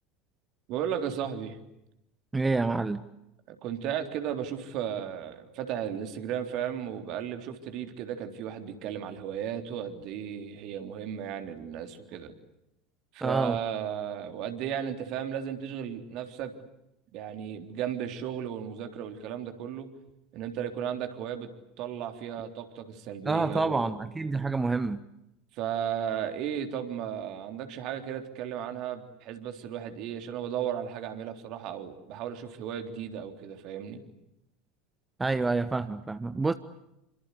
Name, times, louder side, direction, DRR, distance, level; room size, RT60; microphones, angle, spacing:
voice 1, 0.7-1.6 3.5-12.3 13.1-16.5 17.1-19.9 20.3-21.5 21.8-23.9 25.5-34.0, right 9 dB, 50° right, 6 dB, 3.6 m, -35 dB
voice 2, 2.3-3.0 13.2-13.6 23.2-25.0 35.2-36.5, right 3 dB, 15° right, 12 dB, 1.2 m, -28 dB
28.0 x 25.0 x 8.3 m, 0.86 s
figure-of-eight pair, 75°, 0 cm